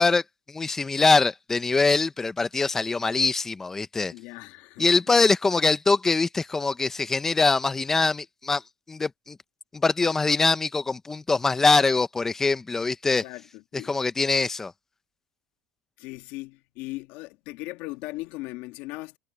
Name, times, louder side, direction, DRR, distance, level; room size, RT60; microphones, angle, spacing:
voice 1, 0.0-4.1 4.8-8.6 8.9-9.4 9.7-13.2 13.9-14.7, left 4 dB, 10° left, 0.8 m, -23 dB
voice 2, 4.1-4.9 13.2-13.9 16.0-19.2, left 20 dB, 60° left, 1.9 m, -38 dB
supercardioid pair, 145°, 3 cm